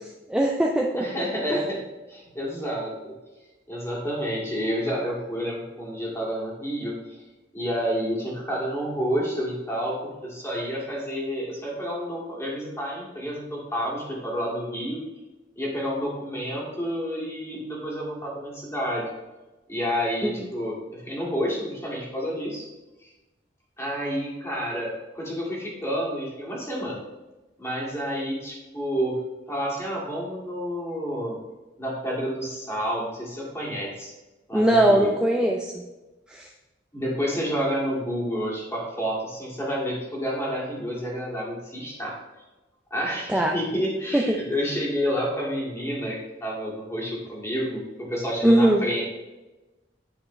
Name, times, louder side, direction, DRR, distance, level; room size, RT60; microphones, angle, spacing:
voice 1, 0.3-1.0 1.5-1.6 20.2-20.3 34.5-35.7 36.3-36.4 43.3-43.5 44.1-44.2 48.4-48.8, right 1 dB, 5° right, 0 dB, 0.4 m, -20 dB
voice 2, 1.0-1.8 2.1-3.1 3.7-7.2 7.5-15.0 15.6-19.0 19.7-22.7 23.0-23.1 23.8-27.0 27.6-29.2 29.5-31.4 31.8-34.1 34.5-35.1 36.9-42.2 42.9-49.0, equal, 15° left, -4 dB, 2.1 m, -29 dB
9.7 x 4.9 x 3.1 m, 1.1 s
head